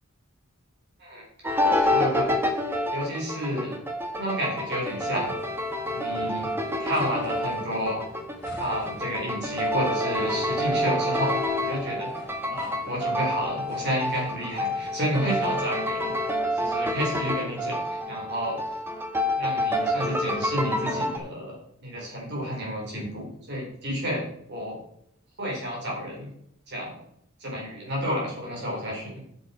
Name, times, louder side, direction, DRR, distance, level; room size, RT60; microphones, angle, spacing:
sound 1, 1.4-21.2, left 1 dB, 10° right, 1.4 m, -28 dB
voice 1, 1.8-3.8 4.2-5.4 5.9-6.5 6.8-8.0 8.6-12.1 12.5-18.6 19.4-21.6 21.8-24.2 24.5-24.8 25.4-26.3 26.7-27.0 27.4-29.2, equal, 55° right, -3 dB, 4.3 m, -31 dB
sound 2, 4.8-15.1, left 2 dB, 50° left, 2.3 m, -48 dB
9.9 x 8.1 x 4.4 m, 0.71 s
head